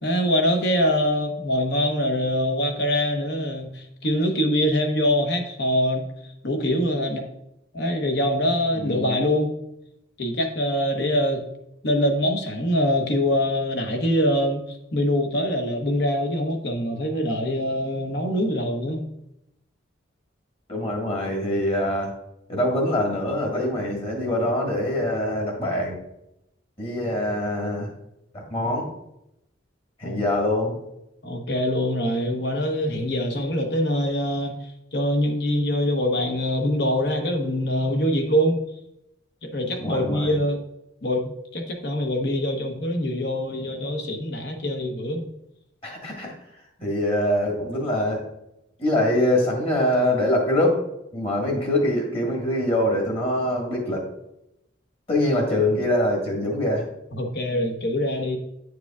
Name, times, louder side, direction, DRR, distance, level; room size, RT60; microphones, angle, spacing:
voice 1, 0.0-7.2 7.7-9.5 10.2-11.4 11.8-19.0 30.0-30.2 31.2-34.6 34.9-38.6 39.4-40.6 41.0-45.3 57.1-58.4, equal, 60° left, 4 dB, 0.9 m, -24 dB
voice 2, 8.7-9.2 20.7-22.1 22.5-26.0 26.8-27.9 28.3-28.9 30.0-30.8 39.8-40.4 45.8-46.3 46.8-48.2 48.8-50.8 51.1-54.0 55.1-56.9, left 1 dB, 30° left, -1 dB, 1.5 m, -24 dB
9.2 x 4.8 x 2.4 m, 0.83 s
head